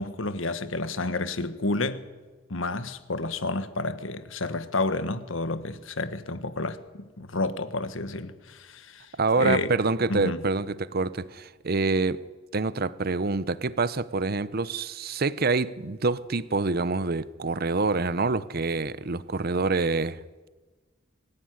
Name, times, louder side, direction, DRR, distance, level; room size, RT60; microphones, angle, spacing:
voice 1, 0.0-2.0 2.5-9.1 9.3-9.7 10.1-10.4, left 2 dB, 80° left, 1.4 m, -30 dB
voice 2, 9.2-20.2, right 3 dB, 50° right, 0.8 m, -26 dB
24.5 x 15.5 x 9.6 m
head